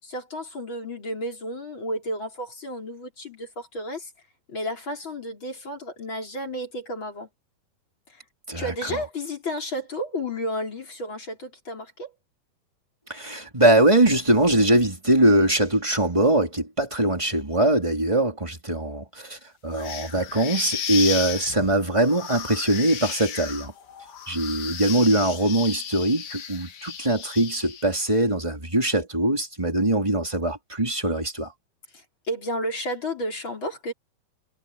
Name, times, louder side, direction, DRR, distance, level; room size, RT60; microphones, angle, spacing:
voice 1, 0.0-4.1 4.5-7.3 8.1-8.2 8.6-12.1 31.9-33.9, equal, 30° left, 5.4 m, -32 dB
voice 2, 8.5-9.0 13.1-23.7 24.3-31.5, right 1 dB, 10° right, 3.6 m, -22 dB
sound 1, 19.7-28.0, left 8 dB, 75° left, 4.6 m, -34 dB
omnidirectional pair, 4.5 m